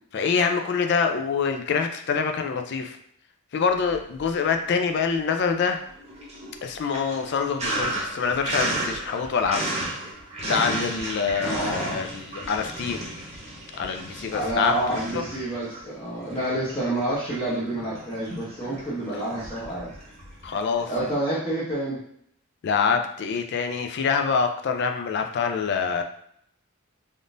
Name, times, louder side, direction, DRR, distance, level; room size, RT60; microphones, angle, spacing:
voice 1, 0.1-3.0 3.5-5.8 6.6-9.6 10.4-13.1 13.8-15.2 20.4-20.9 22.6-26.0, left 5 dB, 50° left, 5 dB, 0.3 m, -25 dB
Sink (filling or washing), 3.8-4.7 5.0-21.1, right 1 dB, 30° right, 0.8 m, -34 dB
voice 2, 11.4-12.0 14.3-19.9 20.8-22.0, right 1 dB, 20° left, -9 dB, 0.8 m, -28 dB
3.5 x 2.5 x 2.5 m, 0.68 s
head